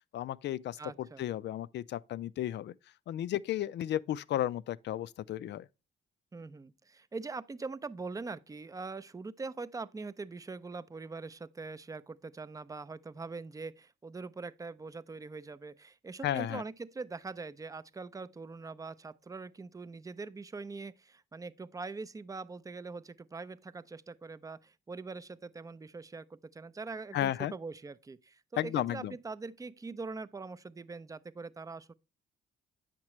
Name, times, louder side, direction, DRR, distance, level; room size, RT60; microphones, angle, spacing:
voice 1, 0.1-2.7 3.1-5.7 16.2-16.6 27.1-27.5 28.6-29.1, left 12 dB, 65° left, 0.4 m, -34 dB
voice 2, 0.8-1.2 6.3-31.9, right 4 dB, 15° right, 0.5 m, -43 dB
8.7 x 6.0 x 3.1 m
cardioid pair, 90°, 20 cm